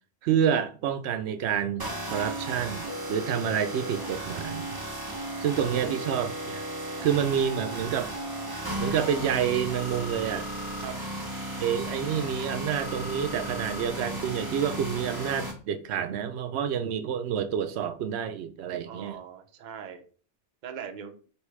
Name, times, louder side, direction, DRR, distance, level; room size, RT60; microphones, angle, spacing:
voice 1, 0.2-4.8 5.4-6.6 7.0-8.1 8.8-10.5 11.6-19.2, right 8 dB, 90° right, 0.8 m, -28 dB
sound 1, 1.8-15.5, right 1 dB, 25° right, 0.8 m, -35 dB
voice 2, 5.6-6.3 10.8-10.9 18.9-20.0 20.6-21.1, right 7 dB, 55° right, 0.7 m, -41 dB
4.7 x 3.1 x 3.2 m
omnidirectional pair, 1.1 m